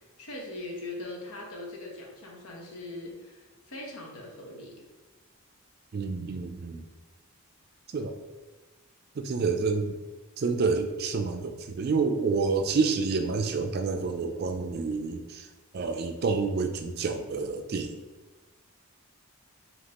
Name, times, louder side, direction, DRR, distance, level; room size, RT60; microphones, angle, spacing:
voice 1, 0.2-4.8, left 2 dB, 90° left, -1 dB, 1.0 m, -41 dB
voice 2, 5.9-6.9 7.9-8.1 9.2-10.0 10.4-15.5 15.7-18.0, right 4 dB, 45° right, 6 dB, 0.3 m, -28 dB
5.1 x 2.8 x 2.9 m, 1.2 s
head